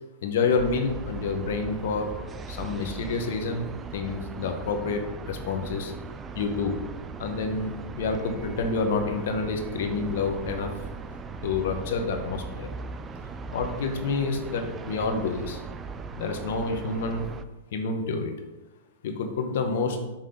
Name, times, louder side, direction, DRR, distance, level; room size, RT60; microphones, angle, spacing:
voice 1, 0.2-2.1 2.5-3.7 3.9-5.9 6.3-6.8 7.2-10.7 11.4-12.7 13.5-15.6 16.2-17.3 17.7-18.3 19.0-20.0, left 4 dB, 65° left, 4 dB, 1.1 m, -28 dB
sound 1, 0.6-17.4, right 4 dB, 20° right, 0.3 m, -38 dB
5.8 x 3.7 x 5.1 m, 1.1 s
hypercardioid pair, 130°, 0 cm